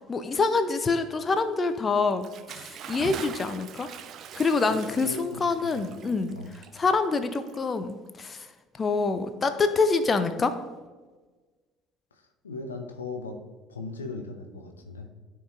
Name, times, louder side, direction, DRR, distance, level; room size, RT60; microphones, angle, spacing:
voice 1, 0.1-3.9 4.4-8.5 8.8-10.5, left 4 dB, 30° left, 10 dB, 0.6 m, -26 dB
Bathtub (filling or washing) / Splash splatter, 2.1-8.1, right 8 dB, 50° right, 0.4 m, -43 dB
voice 2, 4.7-6.0 6.3-6.6 12.1-13.4 13.7-15.1, left 3 dB, 80° left, 5 dB, 0.7 m, -39 dB
13.0 x 4.7 x 2.5 m, 1.3 s
figure-of-eight pair, 55°, 0 cm